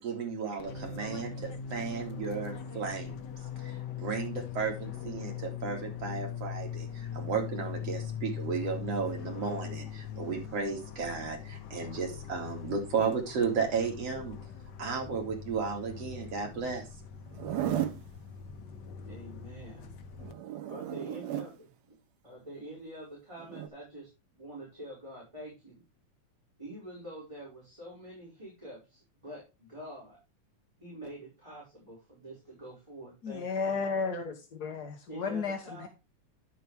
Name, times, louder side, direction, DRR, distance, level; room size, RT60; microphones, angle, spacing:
voice 1, 0.0-3.2 3.6-14.4 14.8-16.9, right 5 dB, 55° right, 2 dB, 3.4 m, -34 dB
Fixed-wing aircraft airplane, 0.6-20.3, left 8 dB, 85° left, 0.9 m, -41 dB
Zipper (clothing), 17.3-18.0 20.2-21.5 23.4-23.7, right 11 dB, 70° right, 2.2 m, -34 dB
voice 2, 19.1-19.9 20.7-22.0 22.2-24.1 24.4-25.8 26.6-30.2 30.8-33.9 35.1-35.9, right 1 dB, 10° right, -6 dB, 5.3 m, -46 dB
voice 3, 33.2-35.9, left 5 dB, 55° left, 5 dB, 1.1 m, -33 dB
11.0 x 7.8 x 3.5 m, 0.26 s
omnidirectional pair, 3.4 m